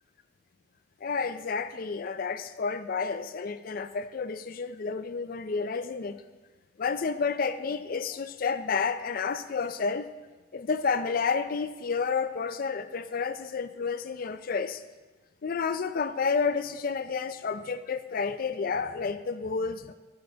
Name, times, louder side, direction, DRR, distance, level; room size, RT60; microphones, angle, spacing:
voice 1, 1.0-6.2 6.8-10.1 10.5-14.8 15.4-19.9, left 5 dB, 50° left, 11 dB, 0.4 m, -30 dB
13.5 x 6.5 x 3.4 m, 1.3 s
head